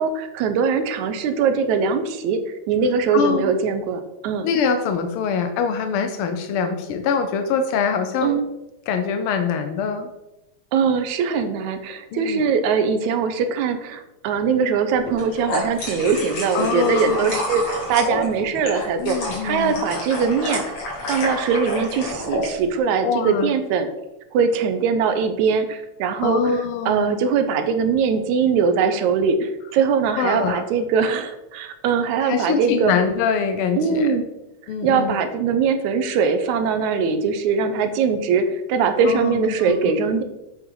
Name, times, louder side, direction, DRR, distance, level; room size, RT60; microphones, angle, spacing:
voice 1, 0.0-4.5 8.2-8.5 10.7-20.6 21.1-23.9 24.3-26.4 26.9-32.9 33.8-34.2 34.8-40.2, right 5 dB, 80° right, 8 dB, 2.1 m, -21 dB
voice 2, 3.1-3.5 4.4-8.4 8.9-10.1 12.1-12.4 16.5-17.4 19.0-19.8 23.0-23.5 26.2-27.2 30.2-30.6 32.2-34.2 34.7-35.2 39.1-39.9, left 6 dB, 80° left, 7 dB, 1.2 m, -24 dB
sound 1, 15.0-22.5, left 1 dB, 65° left, 3.8 m, -29 dB
8.1 x 7.9 x 3.8 m, 0.93 s
omnidirectional pair, 3.3 m